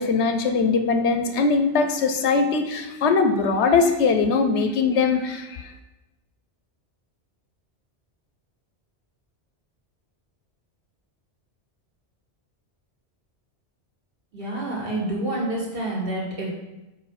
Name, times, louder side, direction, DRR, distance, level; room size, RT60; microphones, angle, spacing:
voice 1, 0.0-5.7, left 4 dB, 75° left, 8 dB, 0.9 m, -21 dB
voice 2, 14.3-16.5, right 2 dB, 55° right, -5 dB, 2.1 m, -28 dB
4.8 x 4.6 x 5.7 m, 1.0 s
omnidirectional pair, 1.2 m